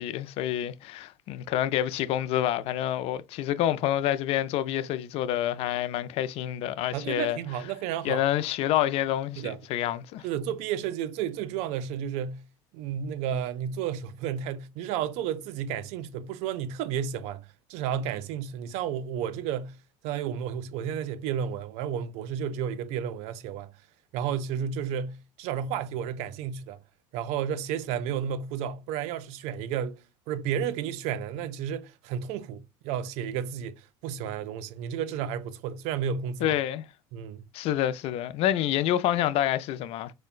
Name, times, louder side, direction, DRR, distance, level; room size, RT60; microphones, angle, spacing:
voice 1, 0.0-7.4 8.0-10.3 36.4-36.8 37.5-40.1, left 12 dB, 60° left, 0.4 m, -28 dB
voice 2, 6.9-8.3 9.4-9.6 10.2-12.5 12.7-19.8 20.0-23.7 24.1-26.8 27.1-30.0 30.3-36.6 37.1-37.4, right 8 dB, 70° right, 0.4 m, -32 dB
4.4 x 2.1 x 2.4 m
supercardioid pair, 100°, 11 cm